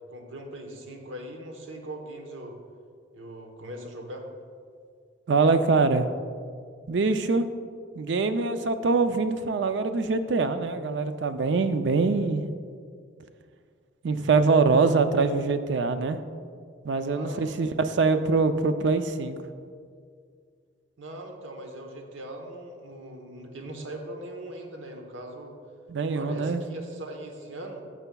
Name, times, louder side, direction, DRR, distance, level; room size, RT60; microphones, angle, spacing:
voice 1, 0.1-2.6 3.1-4.3 17.0-17.5 21.0-25.6 26.1-27.8, right 1 dB, 90° right, 3 dB, 1.0 m, -40 dB
voice 2, 5.3-6.1 6.9-7.5 8.0-12.4 14.0-16.2 16.8-19.4 25.9-26.6, right 4 dB, 70° right, 10 dB, 0.4 m, -24 dB
12.0 x 6.9 x 2.3 m, 2.2 s
head